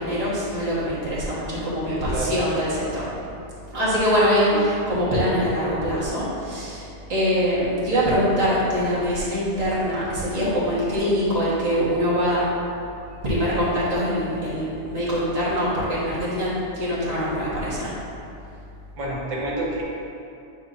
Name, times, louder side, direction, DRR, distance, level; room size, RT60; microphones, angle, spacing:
voice 1, 0.0-3.2 3.7-12.4 13.2-17.9, equal, 30° right, -9 dB, 1.6 m, -23 dB
voice 2, 1.9-2.3 19.0-19.8, right 2 dB, 90° right, -4 dB, 1.4 m, -28 dB
8.3 x 4.6 x 2.7 m, 2.7 s
omnidirectional pair, 1.3 m